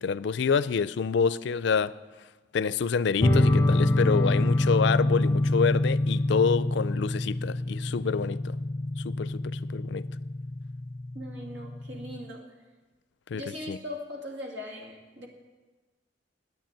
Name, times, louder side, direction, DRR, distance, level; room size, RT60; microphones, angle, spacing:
voice 1, 0.0-1.9 2.5-8.6 9.0-10.0 13.3-13.4 13.7-13.8, left 5 dB, 65° left, 0.4 m, -27 dB
sound 1, 3.2-12.2, left 1 dB, 15° left, 0.7 m, -26 dB
voice 2, 11.1-12.5 13.3-15.3, left 1 dB, 70° right, 2.4 m, -39 dB
10.5 x 9.3 x 9.0 m
head